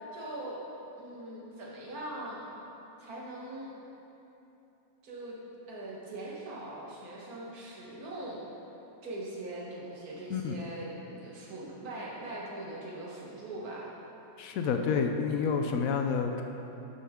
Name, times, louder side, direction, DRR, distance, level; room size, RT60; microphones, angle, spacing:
voice 1, 0.1-0.6 1.0-2.5 3.0-3.7 5.0-5.4 5.7-8.4 9.0-13.9 14.6-14.7, right 1 dB, 55° right, -4 dB, 1.9 m, -41 dB
voice 2, 14.4-16.4, left 5 dB, 75° left, 5 dB, 0.8 m, -29 dB
11.0 x 6.5 x 3.7 m, 3.0 s
omnidirectional pair, 1.9 m